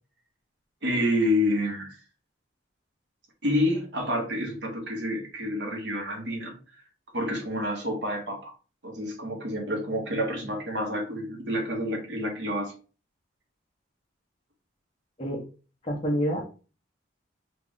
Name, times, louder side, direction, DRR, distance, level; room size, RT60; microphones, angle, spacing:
voice 1, 0.8-2.0 3.4-6.6 7.1-8.5 8.8-12.7, left 1 dB, 60° right, 1 dB, 1.1 m, -28 dB
voice 2, 15.8-16.5, equal, 25° left, -2 dB, 1.0 m, -27 dB
3.1 x 2.4 x 3.8 m, 0.35 s
head